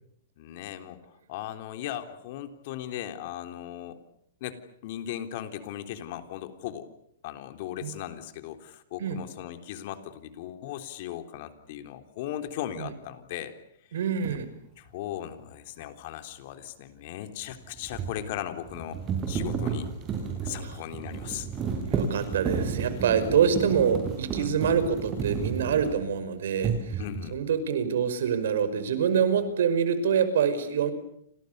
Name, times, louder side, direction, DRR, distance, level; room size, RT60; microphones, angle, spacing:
voice 1, 0.4-4.0 4.4-6.9 7.2-13.5 14.8-19.0 19.3-19.9 20.4-21.5 24.4-24.5 27.0-27.4, left 11 dB, 45° left, 7 dB, 3.7 m, -38 dB
voice 2, 13.9-14.5 20.6-20.8 21.9-27.0 27.3-30.9, right 7 dB, 70° right, 11 dB, 5.4 m, -26 dB
sound 1, 14.2-14.4 17.4-26.2 26.6-27.4, right 6 dB, 20° right, 7.8 m, -32 dB
29.5 x 27.5 x 6.8 m, 0.72 s
hypercardioid pair, 160°, 0 cm